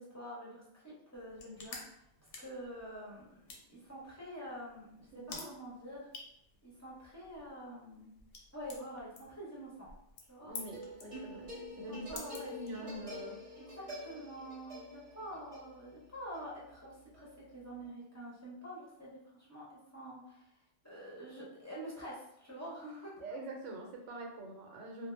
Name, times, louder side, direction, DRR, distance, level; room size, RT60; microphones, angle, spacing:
voice 1, 0.0-1.8 2.4-3.3 3.7-6.1 6.6-8.1 8.5-9.9 10.3-10.5 11.9-12.5 12.8-13.0 13.7-20.5 20.8-23.1, equal, 20° left, -8 dB, 0.5 m, -47 dB
sound 1, 1.1-13.2, left 4 dB, 85° left, 0.9 m, -52 dB
voice 2, 5.1-5.5 10.4-11.4 11.8-12.2 12.5-13.3 23.2-25.1, right 1 dB, 90° right, 1 dB, 0.9 m, -44 dB
sound 2, 10.5-17.9, left 1 dB, 35° right, 0.6 m, -48 dB
2.2 x 2.0 x 3.0 m, 0.78 s
omnidirectional pair, 1.2 m